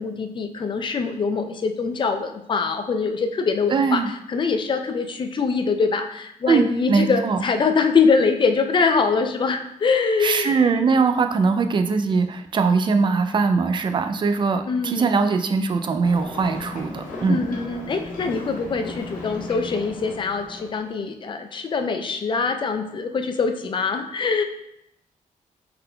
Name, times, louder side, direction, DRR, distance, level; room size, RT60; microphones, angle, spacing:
voice 1, 0.0-4.0 4.3-10.6 14.6-15.1 17.3-24.4, left 5 dB, 35° left, 7 dB, 0.4 m, -23 dB
voice 2, 3.7-4.1 6.5-7.4 10.2-17.5, right 4 dB, 35° right, 7 dB, 0.4 m, -21 dB
Ocean, 16.0-20.9, left 2 dB, 80° left, 0.8 m, -36 dB
5.5 x 3.7 x 2.2 m, 0.80 s
wide cardioid pair, 150°, 14 cm